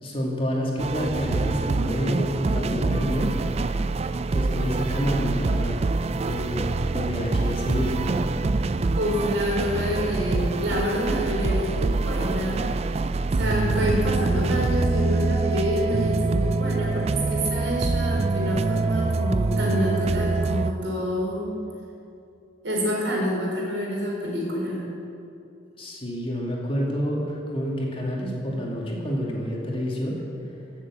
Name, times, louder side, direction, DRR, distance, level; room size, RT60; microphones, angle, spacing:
voice 1, 0.0-3.3 4.3-5.9 6.1-8.2 25.8-30.2, equal, 30° left, -2 dB, 2.3 m, -28 dB
sound 1, 0.8-20.7, right 3 dB, 35° right, 0.4 m, -25 dB
voice 2, 8.9-12.6 13.3-21.5 22.6-24.9, equal, 80° right, -2 dB, 4.1 m, -27 dB
15.5 x 7.4 x 7.5 m, 2.6 s
head